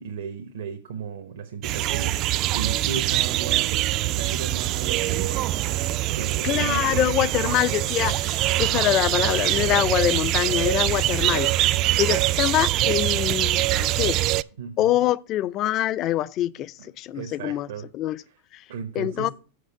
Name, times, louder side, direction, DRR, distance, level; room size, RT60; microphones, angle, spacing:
voice 1, 0.0-5.6 6.1-7.6 8.6-8.8 11.9-12.2 14.6-14.8 16.8-17.8 18.7-19.3, right 7 dB, 80° right, 1.1 m, -35 dB
sound 1, 1.6-14.4, right 15 dB, 45° right, 0.3 m, -24 dB
voice 2, 6.4-11.5 12.0-14.2 14.8-17.7 17.9-18.2 18.5-18.6 19.0-19.3, left 14 dB, 40° left, 0.4 m, -24 dB
6.6 x 5.1 x 6.6 m
hypercardioid pair, 120°, 0 cm